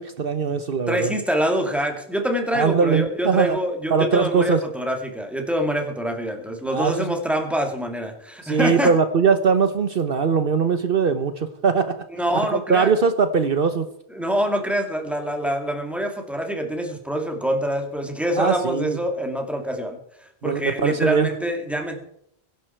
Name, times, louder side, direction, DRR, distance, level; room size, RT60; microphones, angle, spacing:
voice 1, 0.0-1.1 2.5-3.6 3.9-4.6 6.7-6.9 8.4-11.9 12.3-13.9 18.4-19.0 20.4-21.3, right 5 dB, 60° right, 9 dB, 1.1 m, -21 dB
voice 2, 0.9-9.0 12.1-12.9 14.1-20.0 20.4-22.0, equal, ahead, 3 dB, 2.4 m, -25 dB
23.0 x 11.5 x 4.5 m, 0.74 s
omnidirectional pair, 1.1 m